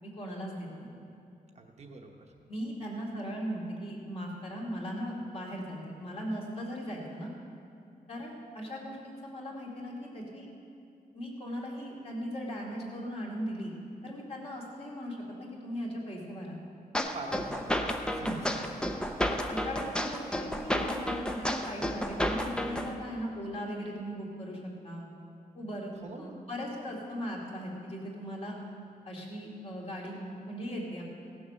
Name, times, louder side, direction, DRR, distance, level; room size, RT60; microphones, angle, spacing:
voice 1, 0.0-0.9 2.5-7.3 8.1-10.5 11.1-13.7 14.0-16.6 18.2-18.4 19.3-25.1 25.5-25.9 26.2-28.6 29.0-31.0, equal, 40° left, -3 dB, 2.3 m, -38 dB
voice 2, 1.6-2.3 17.1-18.4 18.7-18.9 26.0-26.4, right 3 dB, 45° right, 2 dB, 0.9 m, -44 dB
sound 1, 16.9-22.9, equal, 5° left, 0.5 m, -31 dB
16.5 x 7.0 x 6.5 m, 2.5 s
wide cardioid pair, 180°, 16 cm